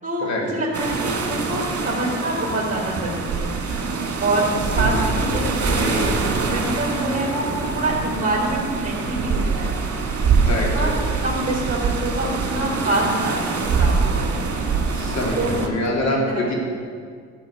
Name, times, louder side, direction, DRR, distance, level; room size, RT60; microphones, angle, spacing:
voice 1, 0.0-3.6 4.2-9.8 10.4-10.9 11.2-14.3 14.5-14.7 15.3-16.6, right 1 dB, 25° right, -4 dB, 3.5 m, -26 dB
sound 1, 0.7-15.7, right 4 dB, 50° right, 2.0 m, -24 dB
voice 2, 4.6-5.4 5.7-6.4 10.4-11.2 14.9-16.5, left 1 dB, 65° left, -1 dB, 3.0 m, -26 dB
13.0 x 6.1 x 8.3 m, 2.1 s
cardioid pair, 90°, 30 cm